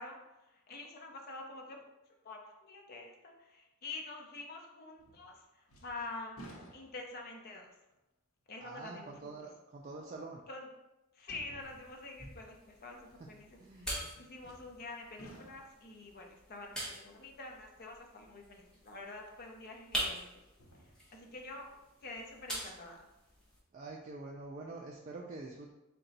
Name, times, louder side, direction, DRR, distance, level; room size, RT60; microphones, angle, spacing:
voice 1, 0.0-1.8 2.2-6.3 6.7-7.7 8.5-9.5 10.5-10.7 11.1-13.9 14.2-20.3 20.8-23.1, left 3 dB, 45° left, 1 dB, 0.6 m, -47 dB
sound 1, 5.0-5.4 5.7-7.3 7.9-8.0 9.8-9.9 11.2-12.1 14.4-14.9 15.2-15.9 18.9-19.0 20.4-21.3 21.7-21.8, right 1 dB, 85° left, 0.7 m, -54 dB
voice 2, 8.6-10.4 13.6-14.1 23.7-25.7, right 3 dB, 35° right, -2 dB, 0.4 m, -46 dB
sound 2, 11.6-23.6, equal, 5° left, 0.9 m, -45 dB
3.9 x 2.2 x 3.9 m, 0.95 s
head